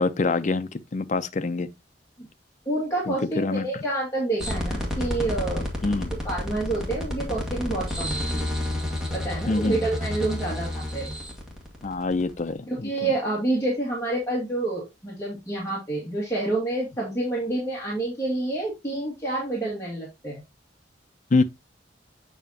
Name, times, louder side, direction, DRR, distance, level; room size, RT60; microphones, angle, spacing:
voice 1, 0.0-1.7 3.1-3.8 5.8-6.1 9.5-9.8 11.8-13.1 21.3-21.4, left 3 dB, 40° left, 0.5 m, -25 dB
voice 2, 2.7-5.6 6.2-8.6 9.1-11.2 12.7-20.4, right 2 dB, 15° left, 2.0 m, -28 dB
sound 1, 4.4-12.5, left 1 dB, 5° right, 1.8 m, -30 dB
7.2 x 5.6 x 2.8 m
head